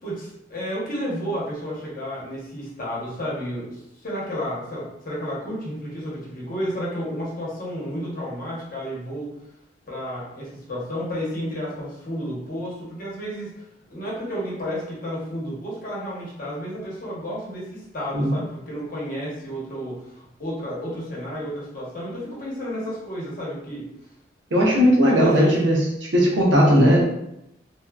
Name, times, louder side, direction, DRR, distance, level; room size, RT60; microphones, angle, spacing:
voice 1, 0.0-9.3 9.9-13.6 13.9-23.9 25.0-25.7, equal, 50° left, -6 dB, 1.0 m, -31 dB
voice 2, 24.5-25.8 26.1-27.0, equal, 80° right, -3 dB, 0.8 m, -17 dB
2.7 x 2.4 x 2.3 m, 0.82 s
head